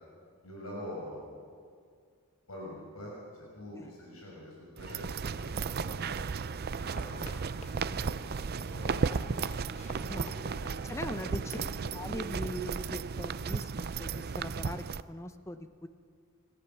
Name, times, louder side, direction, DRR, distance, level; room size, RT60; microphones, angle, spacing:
voice 1, 0.4-1.2 2.5-6.1 6.8-7.4 7.8-8.3 8.5-9.4 9.8-10.5 11.0-11.9 13.5-13.6, left 1 dB, 85° left, -4 dB, 6.1 m, -45 dB
sound 1, 4.8-15.0, right 5 dB, 45° right, 0.5 m, -34 dB
sound 2, 6.8-12.8, left 2 dB, 30° left, 1.1 m, -52 dB
voice 2, 10.9-11.6 11.9-15.9, left 1 dB, 15° left, 9 dB, 0.8 m, -41 dB
27.5 x 14.5 x 7.1 m, 2.2 s
head